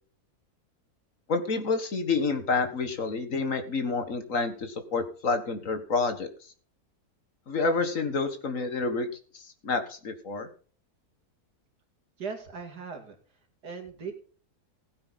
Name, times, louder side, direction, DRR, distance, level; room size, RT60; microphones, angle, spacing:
voice 1, 1.3-6.3 7.5-10.5, left 4 dB, 55° left, 8 dB, 1.9 m, -29 dB
voice 2, 12.2-13.2 13.6-14.1, right 5 dB, 85° right, 4 dB, 3.0 m, -38 dB
16.0 x 8.8 x 4.1 m, 0.41 s
omnidirectional pair, 1.7 m